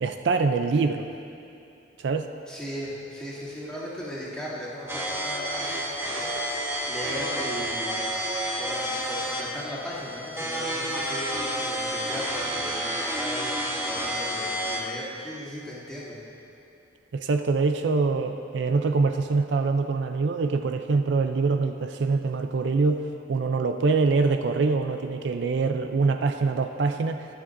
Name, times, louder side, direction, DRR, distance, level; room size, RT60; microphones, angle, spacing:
voice 1, 0.0-1.1 2.0-2.3 17.1-27.3, right 4 dB, 70° right, 7 dB, 0.4 m, -24 dB
voice 2, 2.5-6.3 6.9-8.0 8.6-13.5 13.9-16.2, equal, 5° left, -11 dB, 2.5 m, -37 dB
sound 1, 4.9-14.9, equal, 15° right, 1.0 m, -30 dB
21.5 x 7.1 x 2.6 m, 2.7 s
head